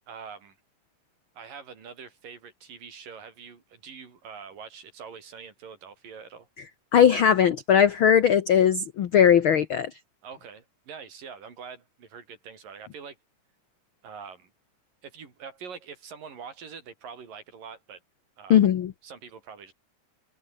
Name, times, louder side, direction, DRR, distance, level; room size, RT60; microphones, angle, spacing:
voice 1, 0.1-0.6 1.4-6.5 10.2-13.2 14.0-14.5 15.0-18.0 18.4-18.6 19.0-19.7, right 6 dB, 85° right, 5.7 m, -44 dB
voice 2, 6.9-9.9 18.5-18.9, left 8 dB, 75° left, 1.1 m, -19 dB
omnidirectional pair, 3.8 m